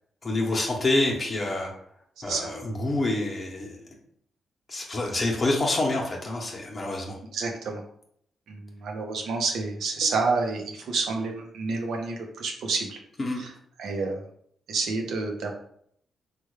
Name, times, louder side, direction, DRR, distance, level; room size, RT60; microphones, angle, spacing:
voice 1, 0.2-1.7 2.2-3.8 4.7-7.2 13.2-13.4, left 2 dB, 40° left, -1 dB, 0.8 m, -27 dB
voice 2, 2.2-2.5 7.3-7.8 8.5-13.0 13.4-13.5 13.8-14.2 14.7-15.5, right 4 dB, 80° right, 3 dB, 0.6 m, -29 dB
3.3 x 2.2 x 3.1 m, 0.67 s
cardioid pair, 65°, 0 cm